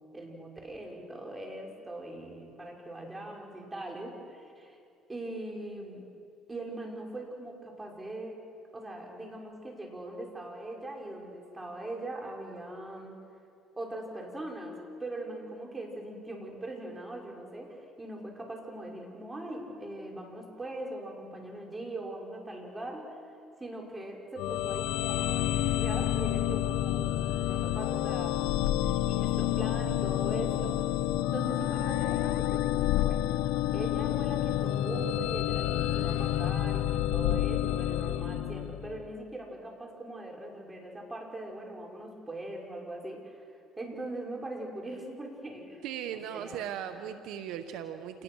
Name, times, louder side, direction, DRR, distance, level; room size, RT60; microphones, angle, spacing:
voice 1, 0.1-4.8 5.1-6.0 6.5-8.4 8.7-13.2 13.8-23.2 23.6-28.4 28.8-30.8 31.3-33.3 33.7-43.5 43.8-45.8 46.1-47.0, right 1 dB, 15° right, 0 dB, 5.9 m, -41 dB
sound 1, 24.4-39.1, left 13 dB, 80° left, 0.7 m, -29 dB
voice 2, 45.8-48.2, right 9 dB, 75° right, 9 dB, 1.1 m, -38 dB
28.0 x 20.0 x 6.4 m, 2.4 s
supercardioid pair, 85°, 0 cm